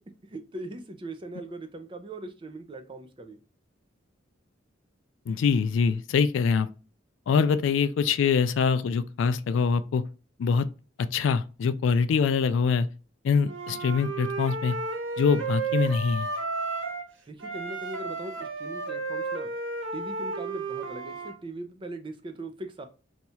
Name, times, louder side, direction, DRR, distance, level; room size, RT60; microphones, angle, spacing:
voice 1, 0.2-3.4 17.3-19.5 19.9-22.9, right 2 dB, 25° right, 0.4 m, -40 dB
voice 2, 5.3-6.7 7.3-10.0 10.4-10.7 11.1-12.9 13.2-14.8 15.2-16.3, left 5 dB, 70° left, 0.3 m, -24 dB
Wind instrument woodwind instrument, 13.5-17.1 17.4-21.3, right 3 dB, 75° right, 0.7 m, -33 dB
2.8 x 2.3 x 4.2 m
head